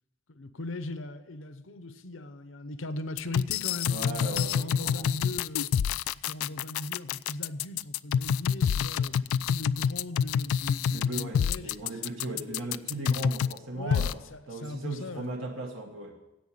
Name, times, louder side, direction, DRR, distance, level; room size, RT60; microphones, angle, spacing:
voice 1, 0.3-5.7 6.1-12.0 12.3-12.7 13.7-15.4, left 1 dB, 70° left, 0.8 m, -39 dB
sound 1, 3.2-13.6 13.9-14.1, left 8 dB, 90° left, 0.3 m, -27 dB
voice 2, 3.9-5.1 10.9-14.1 14.5-16.2, right 2 dB, 80° right, 1.5 m, -37 dB
10.5 x 8.2 x 8.5 m
head